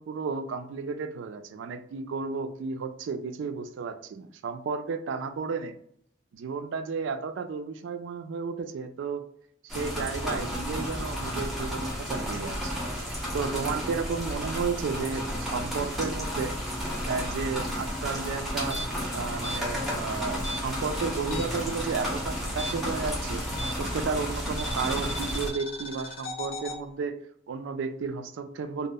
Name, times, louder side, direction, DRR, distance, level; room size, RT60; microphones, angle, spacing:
voice 1, 0.0-5.7 6.3-9.2 9.6-12.8 13.3-16.5 17.1-18.8 19.1-23.4 23.8-27.1 27.5-28.9, right 5 dB, 70° right, 9 dB, 0.3 m, -33 dB
sound 1, 9.7-25.5, equal, ahead, 0.5 m, -32 dB
sound 2, 18.7-21.7 22.0-24.0 24.6-26.8, equal, 85° left, 0.4 m, -38 dB
2.0 x 2.0 x 3.5 m, 0.68 s
head